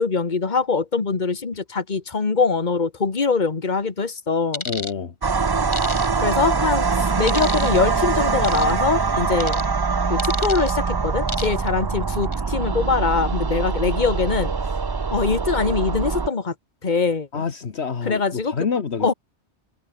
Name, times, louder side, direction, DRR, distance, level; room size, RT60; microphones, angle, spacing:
voice 1, 0.0-4.6 6.2-9.6 10.1-14.5 15.1-16.5 16.8-17.4 18.1-18.5 19.0-19.1, left 4 dB, 45° left, 1.7 m, -23 dB
sound 1, 4.5-4.9 5.7-6.4 7.3-7.8 8.4-8.7 9.4-9.7 10.2-10.7 11.3-11.7 12.1-12.4, left 2 dB, 25° left, 2.2 m, -31 dB
voice 2, 4.6-5.1 17.3-19.1, left 6 dB, 75° left, 1.7 m, -27 dB
sound 2, 5.2-16.3, right 4 dB, 30° right, 0.5 m, -23 dB
omnidirectional pair, 1.1 m